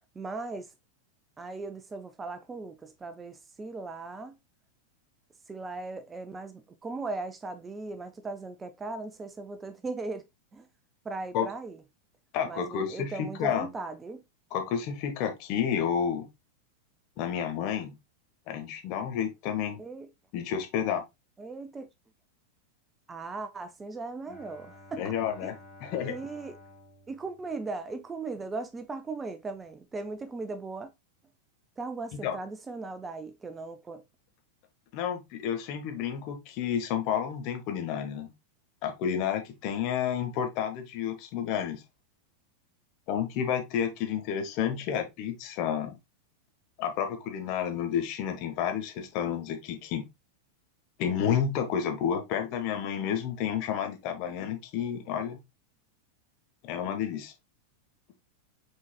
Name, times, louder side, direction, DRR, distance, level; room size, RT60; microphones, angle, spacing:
voice 1, 0.1-0.7 1.4-4.4 5.5-10.2 10.5-10.7 11.0-11.8 12.4-14.2 19.8-20.1 21.4-21.9 23.1-25.5 26.0-26.6 27.1-30.9 31.8-34.0 44.7-44.8, right 3 dB, 15° right, 0.4 m, -38 dB
voice 2, 12.3-13.7 14.5-16.2 17.2-17.9 18.5-19.8 20.3-21.0 25.0-25.5 25.8-26.1 32.2-32.4 34.9-38.3 38.8-41.8 43.1-46.0 46.8-50.0 51.0-55.4 56.6-57.3, left 8 dB, 40° left, 1.1 m, -30 dB
Bowed string instrument, 24.3-28.2, left 1 dB, 10° left, 2.5 m, -52 dB
6.2 x 3.8 x 2.2 m
figure-of-eight pair, 90°, 0 cm